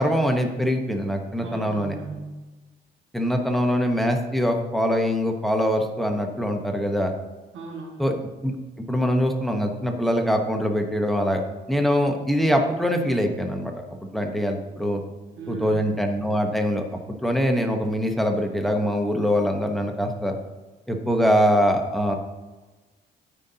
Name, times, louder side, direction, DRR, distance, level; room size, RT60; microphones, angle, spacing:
voice 1, 0.0-1.9 3.1-7.1 8.0-8.1 8.4-8.5 8.9-11.4 11.7-13.8 14.1-15.0 15.5-20.3 20.9-22.1, equal, ahead, 4 dB, 1.0 m, -23 dB
voice 2, 1.4-2.4 7.5-8.1 15.4-15.9, right 3 dB, 90° right, 0 dB, 1.7 m, -37 dB
12.5 x 5.4 x 2.8 m, 1.2 s
cardioid pair, 90°, 20 cm